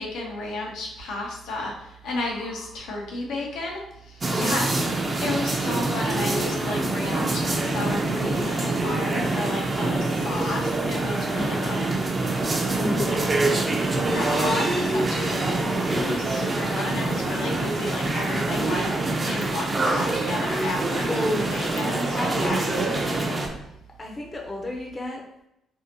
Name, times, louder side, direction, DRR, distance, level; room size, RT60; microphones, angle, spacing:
voice 1, 0.0-4.7 5.2-11.9 14.0-19.0 19.3-21.1 21.4-23.3, left 2 dB, 85° left, -1 dB, 0.6 m, -32 dB
sound 1, 4.2-23.5, right 2 dB, 30° right, 0.4 m, -25 dB
voice 2, 4.3-4.9 11.3-11.8 12.4-13.6 21.1-21.8 24.0-25.2, left 1 dB, 30° left, -1 dB, 0.5 m, -32 dB
2.6 x 2.1 x 2.8 m, 0.81 s
cardioid pair, 90°, 0 cm